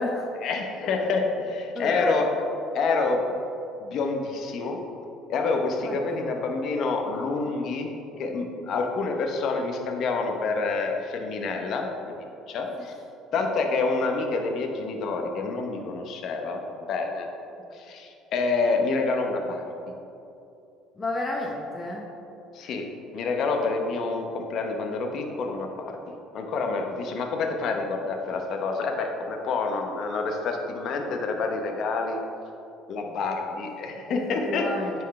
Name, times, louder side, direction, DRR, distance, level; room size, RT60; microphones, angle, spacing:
voice 1, 0.4-2.3 2.7-3.2 3.8-4.8 5.3-7.9 8.2-12.2 12.5-12.9 13.3-16.6 16.9-17.3 17.7-19.7 22.5-22.9 23.1-26.0 26.3-32.2 32.9-34.7, left 4 dB, 60° left, 3 dB, 0.8 m, -27 dB
voice 2, 1.7-2.3 5.8-6.3 12.6-12.9 21.0-22.1 34.1-34.9, left 2 dB, 30° left, -1 dB, 0.8 m, -31 dB
9.1 x 4.5 x 3.2 m, 2.7 s
supercardioid pair, 95°, 0 cm